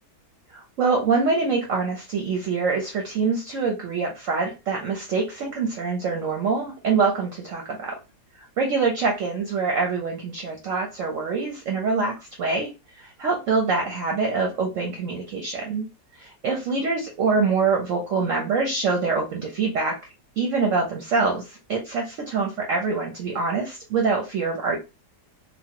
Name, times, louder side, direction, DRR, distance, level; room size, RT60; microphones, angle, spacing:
voice 1, 0.5-7.9 8.6-15.9 16.2-20.0 20.4-24.8, right 4 dB, 60° right, 2 dB, 0.8 m, -25 dB
3.0 x 2.3 x 2.9 m, 0.27 s
omnidirectional pair, 1.9 m